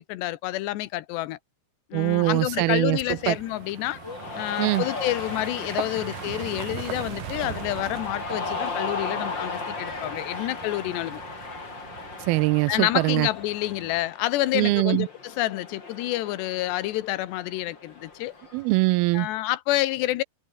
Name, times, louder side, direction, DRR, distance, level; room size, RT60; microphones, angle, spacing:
voice 1, 0.0-1.4 1.9-4.0 4.4-11.2 12.7-18.3 19.1-20.2, left 16 dB, 85° left, 3.2 m, -28 dB
voice 2, 1.9-3.4 4.6-4.8 12.2-13.3 14.5-15.1 18.5-19.3, right 22 dB, 90° right, 2.1 m, -22 dB
sound 1, 2.2-14.1, right 9 dB, 60° right, 3.4 m, -40 dB
Cheering, 4.0-18.8, left 4 dB, 25° left, 4.3 m, -37 dB
omnidirectional pair, 4.9 m